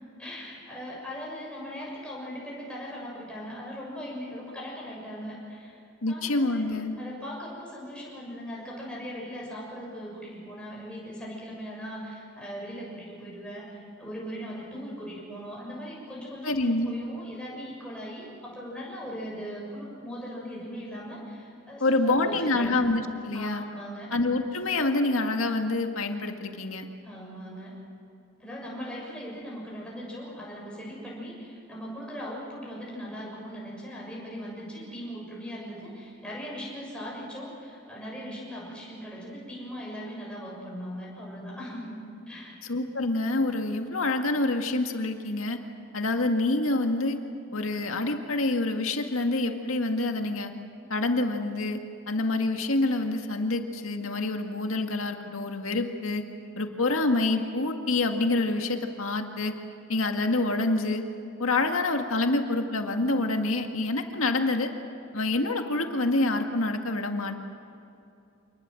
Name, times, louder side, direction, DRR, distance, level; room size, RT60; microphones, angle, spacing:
voice 1, 0.2-5.8 6.1-6.7 7.0-22.8 23.3-24.1 27.0-27.8 28.4-42.6, equal, 5° left, -4 dB, 6.8 m, -39 dB
voice 2, 6.0-7.0 16.4-16.9 21.8-23.6 24.1-26.9 42.7-45.6 45.9-47.2 47.5-50.5 50.9-51.8 52.1-56.2 56.6-59.5 59.9-61.0 61.4-64.7 65.1-67.4, left 2 dB, 85° left, 4 dB, 2.0 m, -27 dB
27.0 x 20.5 x 7.8 m, 2.6 s
head